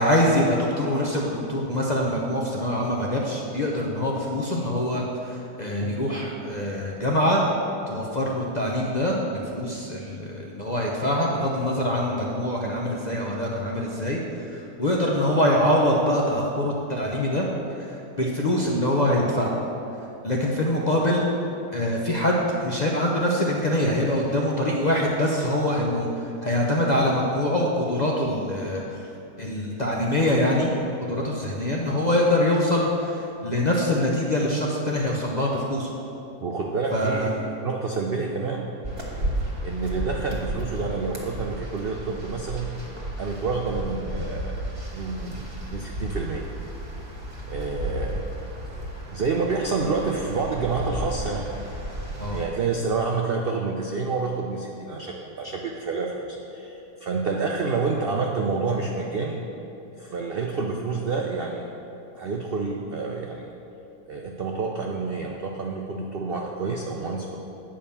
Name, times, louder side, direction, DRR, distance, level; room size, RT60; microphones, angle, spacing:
voice 1, 0.0-7.4 7.9-17.5 17.8-19.6 20.2-21.3 21.7-22.4 22.6-29.1 29.4-30.7 31.1-35.9 36.9-37.3 52.2-52.4, left 1 dB, 40° left, -2 dB, 0.6 m, -24 dB
voice 2, 36.4-37.3 37.6-38.7 39.6-42.7 43.2-44.7 44.9-45.4 45.7-46.4 47.5-48.3 48.7-51.5 52.3-59.4 60.0-61.7 62.2-63.5 64.1-67.3, right 4 dB, 70° right, 1 dB, 0.5 m, -28 dB
sound 1, 38.8-52.5, right 1 dB, 35° right, 1.6 m, -33 dB
8.8 x 5.0 x 7.0 m, 2.8 s
omnidirectional pair, 1.7 m